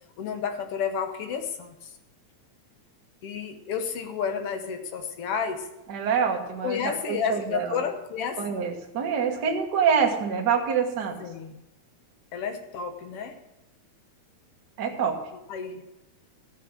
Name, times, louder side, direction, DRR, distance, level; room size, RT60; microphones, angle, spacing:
voice 1, 0.2-1.9 3.2-5.7 6.6-8.4 11.2-11.5 12.3-13.3 15.5-15.8, left 7 dB, 65° left, 7 dB, 1.7 m, -31 dB
voice 2, 5.9-6.8 7.1-7.8 8.4-11.2 14.8-15.2, right 6 dB, 45° right, 2 dB, 1.5 m, -25 dB
13.5 x 7.2 x 6.4 m, 0.95 s
omnidirectional pair, 3.5 m